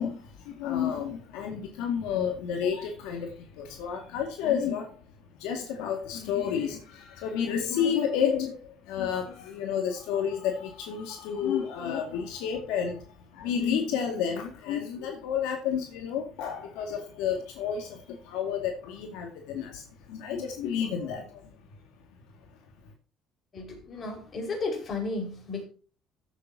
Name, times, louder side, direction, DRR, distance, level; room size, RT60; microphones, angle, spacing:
voice 1, 0.0-5.0 5.3-21.4, left 8 dB, 90° left, 2.1 m, -31 dB
voice 2, 23.5-25.6, left 3 dB, 40° left, 5.1 m, -33 dB
14.5 x 8.3 x 2.8 m
cardioid pair, 110°, 0 cm